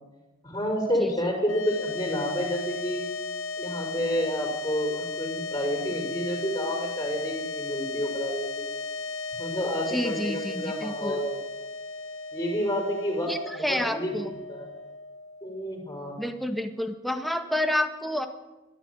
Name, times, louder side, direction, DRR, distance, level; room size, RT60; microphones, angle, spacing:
voice 1, 0.4-3.0 3.6-8.6 9.3-11.4 12.3-14.2 14.5-14.7 15.4-16.2, equal, 15° left, 1 dB, 5.7 m, -29 dB
voice 2, 1.0-1.3 9.9-11.2 13.3-14.3 16.2-18.3, left 1 dB, ahead, 7 dB, 1.5 m, -29 dB
sound 1, 1.4-15.8, left 3 dB, 80° left, 1.3 m, -35 dB
21.5 x 14.0 x 9.7 m, 1.1 s
head